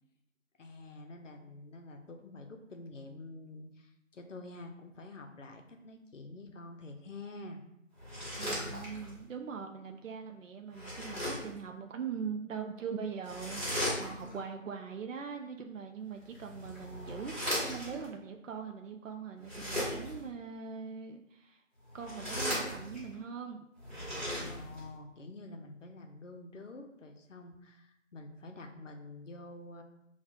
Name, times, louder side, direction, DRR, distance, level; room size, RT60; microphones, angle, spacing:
voice 1, 0.6-7.6 24.4-29.8, left 2 dB, 70° left, 4 dB, 0.6 m, -48 dB
sound 1, 8.0-9.2 10.7-11.6 13.2-14.4 16.2-18.1 19.4-20.3 21.9-23.1 23.8-24.9, equal, 35° right, 1.3 m, -37 dB
voice 2, 8.4-21.6 21.9-23.6, right 6 dB, 75° right, 4 dB, 0.5 m, -41 dB
5.7 x 2.3 x 2.2 m, 0.80 s
figure-of-eight pair, 175°, 39 cm